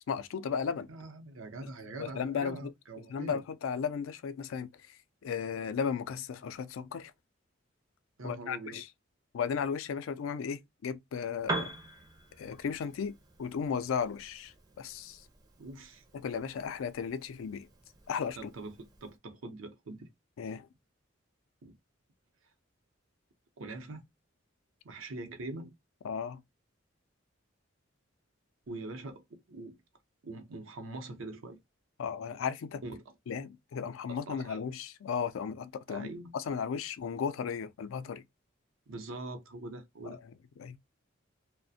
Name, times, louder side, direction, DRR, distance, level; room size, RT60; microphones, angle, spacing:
voice 1, 0.1-0.9 2.0-2.7 3.1-4.7 5.2-7.1 8.2-8.9 9.3-11.7 12.4-15.2 16.1-17.7 18.1-18.4 20.4-20.7 26.0-26.4 32.0-32.8 33.3-36.1 36.3-38.2 40.0-40.2 40.6-40.8, left 6 dB, 85° left, 0.4 m, -35 dB
voice 2, 0.9-3.4 8.2-8.8 12.4-12.5 15.6-16.0 18.3-20.1 21.6-21.8 23.6-24.0 24.8-25.7 28.7-29.8 30.2-31.6 32.8-33.0 34.1-34.6 35.9-36.3 38.9-40.2, right 2 dB, 85° right, 0.6 m, -43 dB
Piano, 11.4-19.2, right 2 dB, 20° right, 0.4 m, -44 dB
2.4 x 2.1 x 2.6 m
head